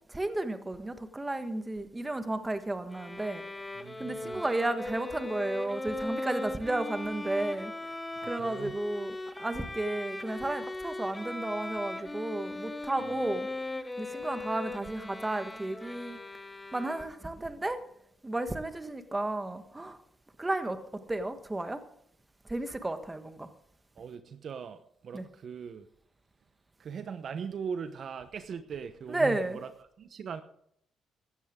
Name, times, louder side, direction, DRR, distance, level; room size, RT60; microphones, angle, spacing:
voice 1, 0.0-3.4 4.0-7.7 8.2-13.5 14.0-16.2 16.7-17.8 18.2-20.0 20.4-21.8 22.4-23.5 25.1-25.3 29.1-29.6, right 2 dB, 15° right, 1.4 m, -33 dB
Bowed string instrument, 2.9-17.4, left 2 dB, 15° left, 1.2 m, -39 dB
voice 2, 3.8-4.4 8.2-8.8 13.0-13.2 24.0-25.9 26.8-29.7 30.0-30.4, right 6 dB, 55° right, 0.9 m, -40 dB
16.0 x 12.5 x 3.7 m
cardioid pair, 90°, 0 cm